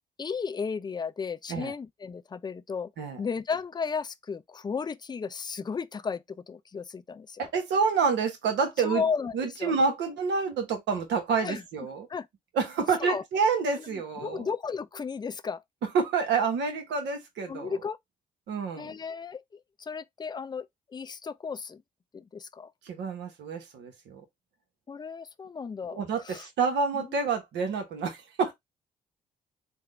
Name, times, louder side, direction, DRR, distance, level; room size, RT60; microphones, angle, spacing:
voice 1, 0.2-2.9 3.2-7.4 8.8-9.3 9.6-9.7 11.4-11.6 12.1-12.3 13.0-13.2 13.8-15.6 17.5-18.0 18.8-20.7 20.9-21.8 22.1-22.7 24.9-26.5 26.9-27.1, left 5 dB, 25° left, 0.4 m, -34 dB
voice 2, 7.4-9.0 9.3-12.1 12.5-14.5 15.9-17.7 18.5-18.9 22.8-24.2 25.9-28.5, right 5 dB, 70° right, 1.0 m, -28 dB
3.5 x 2.2 x 3.2 m
hypercardioid pair, 45°, 19 cm